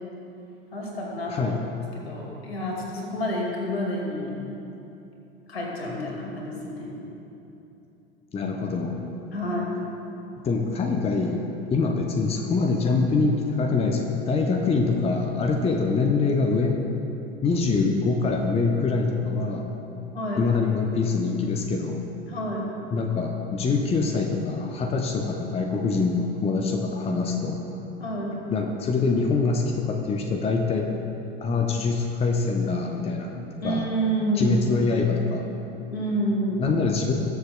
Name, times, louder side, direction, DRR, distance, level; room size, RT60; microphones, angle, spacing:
voice 1, 0.7-1.6 2.0-4.3 5.5-6.9 8.4-8.5 9.3-9.7 20.1-20.4 22.3-22.6 28.0-28.3 33.6-34.6 35.9-36.7, equal, 75° left, -2 dB, 2.1 m, -28 dB
voice 2, 1.3-1.6 8.3-9.0 10.4-11.4 11.7-16.8 17.4-19.6 20.4-22.0 22.9-27.6 28.5-30.9 31.4-33.3 33.6-33.9 34.4-35.5 36.6-37.1, left 4 dB, 20° left, 3 dB, 0.7 m, -24 dB
20.5 x 7.0 x 2.2 m, 2.9 s
figure-of-eight pair, 75°, 31 cm